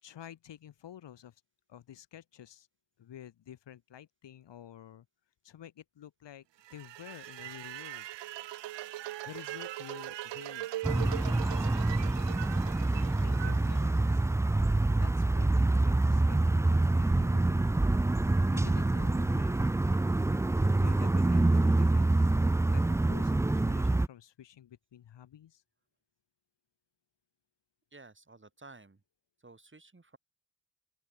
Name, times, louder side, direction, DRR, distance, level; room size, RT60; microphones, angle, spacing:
voice 1, 0.0-1.4 1.7-2.7 3.0-5.1 5.4-8.1 9.2-12.2 13.2-14.2 15.0-17.7 18.5-19.6 20.8-22.2 22.6-25.6, left 10 dB, 80° left, 2.0 m, -50 dB
sound 1, 6.6-14.7, right 15 dB, 90° right, 0.8 m, -41 dB
sound 2, 10.8-24.1, right 2 dB, 5° right, 0.4 m, -26 dB
voice 2, 27.9-29.0 29.4-30.2, right 3 dB, 30° right, 3.2 m, -53 dB
open air
supercardioid pair, 40°, 42 cm